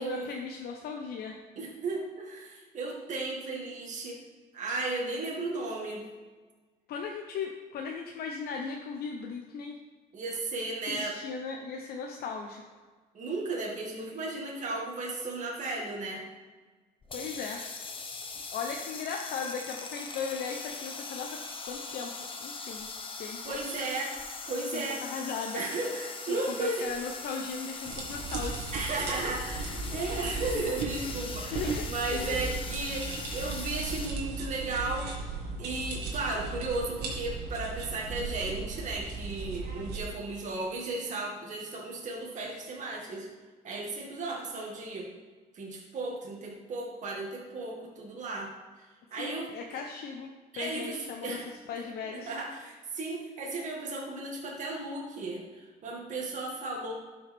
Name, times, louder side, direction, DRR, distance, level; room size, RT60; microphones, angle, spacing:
voice 1, 0.0-1.4 6.9-9.8 10.9-12.6 17.1-17.6 18.5-21.4 21.6-22.1 22.4-22.9 23.2-23.6 24.7-25.6 26.3-28.6 31.5-31.8 32.1-32.4 49.1-50.3 50.5-51.4 51.7-52.3, left 5 dB, 65° left, 2 dB, 0.8 m, -37 dB
voice 2, 1.6-4.2 4.5-6.1 10.1-11.2 13.1-16.2 23.4-24.2 24.5-25.1 25.5-26.9 28.7-35.1 35.6-43.3 43.6-45.1 45.5-48.5 48.8-49.5 50.5-56.9, right 2 dB, 45° right, -2 dB, 2.1 m, -35 dB
sound 1, 17.0-34.1, left 4 dB, 30° left, 1.0 m, -41 dB
sound 2, 27.8-40.0, right 4 dB, 75° right, 1.8 m, -37 dB
12.0 x 5.5 x 3.5 m, 1.4 s
cardioid pair, 110°, 17 cm